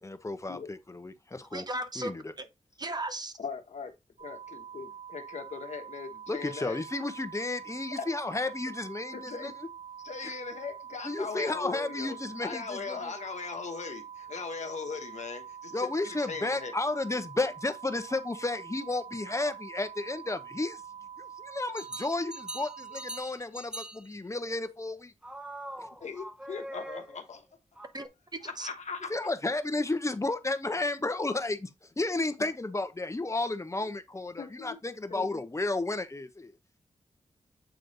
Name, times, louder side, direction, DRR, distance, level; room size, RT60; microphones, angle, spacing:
voice 1, 0.0-1.6 1.9-2.3 6.3-9.5 11.0-13.1 15.7-20.8 21.2-25.1 25.8-25.9 29.1-36.5, left 2 dB, 25° left, 1.0 m, -32 dB
voice 2, 1.5-2.1 2.4-2.5 2.8-3.3 27.9-28.7, right 1 dB, 35° right, 1.1 m, -36 dB
voice 3, 3.4-3.9 4.2-6.8 8.0-8.1 9.1-9.5 10.0-12.2 12.4-16.8 26.0-27.5 28.4-29.1 34.4-34.8 35.1-35.4, left 5 dB, 75° left, 1.1 m, -39 dB
sound 1, 4.2-23.2, right 8 dB, 80° right, 2.1 m, -45 dB
sound 2, 21.7-24.1 25.2-27.4 27.7-28.1, right 1 dB, 5° right, 0.6 m, -43 dB
8.0 x 3.2 x 4.0 m
cardioid pair, 50°, 12 cm